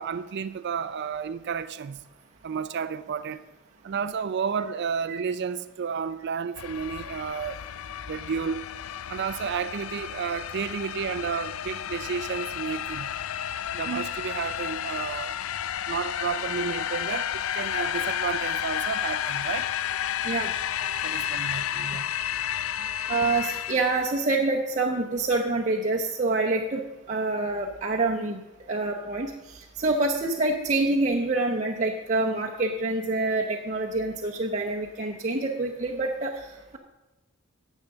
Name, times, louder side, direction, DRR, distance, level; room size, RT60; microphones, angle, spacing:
voice 1, 0.0-2.0 2.4-3.4 3.8-7.6 8.1-8.6 9.1-13.1 13.7-15.4 15.9-19.7 21.0-22.1, right 6 dB, 55° right, 0.4 m, -31 dB
sound 1, 6.6-24.2, left 10 dB, 70° left, 0.4 m, -32 dB
voice 2, 23.1-26.8 27.1-28.4 28.7-36.4, right 2 dB, 35° right, 0.8 m, -26 dB
10.5 x 7.3 x 6.6 m
head